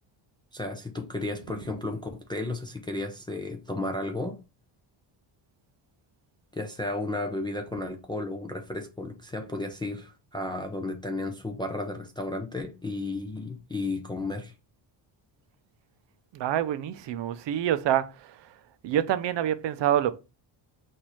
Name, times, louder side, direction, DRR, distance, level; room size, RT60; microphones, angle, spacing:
voice 1, 0.5-4.4 6.5-14.5, left 2 dB, 10° left, 0.3 m, -33 dB
voice 2, 16.3-18.6 18.8-20.1, right 11 dB, 60° right, 0.6 m, -27 dB
6.1 x 2.6 x 2.9 m
cardioid pair, 160°, 49 cm